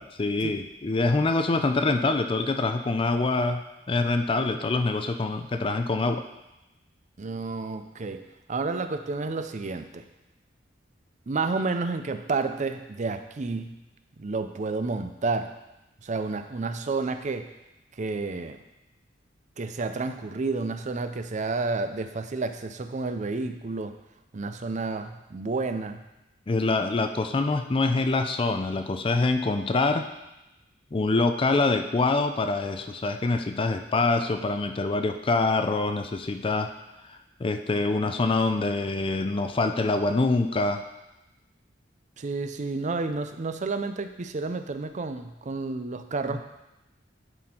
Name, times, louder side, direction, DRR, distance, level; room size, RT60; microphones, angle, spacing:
voice 1, 0.0-3.6 3.9-6.2 26.5-30.1 30.9-36.7 37.0-40.8 46.3-46.4, left 3 dB, 30° left, 7 dB, 0.4 m, -25 dB
voice 2, 7.2-10.0 11.3-13.8 14.2-15.5 16.0-17.5 18.0-18.6 19.6-24.0 24.3-26.0 42.2-46.4, right 3 dB, 40° right, 8 dB, 0.5 m, -30 dB
11.0 x 4.2 x 4.4 m, 0.95 s
head